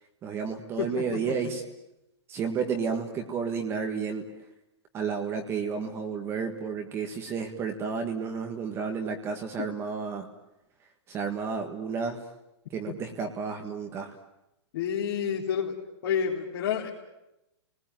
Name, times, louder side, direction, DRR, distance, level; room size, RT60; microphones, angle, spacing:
voice 1, 0.2-1.6 2.3-4.2 4.9-10.3 11.1-12.2 12.7-14.1, right 6 dB, 15° right, 5 dB, 1.6 m, -31 dB
voice 2, 0.8-1.3 14.7-15.8 16.0-16.9, left 8 dB, 50° left, -4 dB, 3.6 m, -29 dB
30.0 x 20.0 x 9.2 m, 0.90 s
hypercardioid pair, 170°, 15 cm